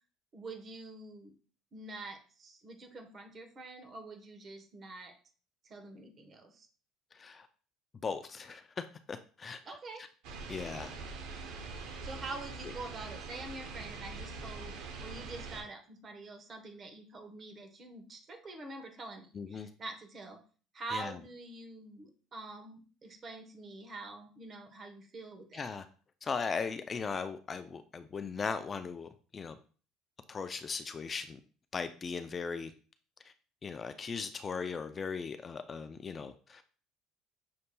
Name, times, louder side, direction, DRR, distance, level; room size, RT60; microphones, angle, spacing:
voice 1, 0.3-1.3 1.7-5.1 5.6-6.7 9.6-10.0 12.0-20.4 20.7-25.7, right 3 dB, 40° right, 5 dB, 1.0 m, -46 dB
voice 2, 7.1-7.5 8.0-9.6 10.5-11.0 19.4-19.7 20.9-21.1 25.5-25.8 26.2-29.6 30.3-31.4 31.7-32.7 33.6-36.6, left 5 dB, 30° left, 9 dB, 0.4 m, -38 dB
sound 1, 10.2-15.6, right 4 dB, 75° right, 0.7 m, -43 dB
6.4 x 2.8 x 2.2 m, 0.39 s
supercardioid pair, 90°, 0 cm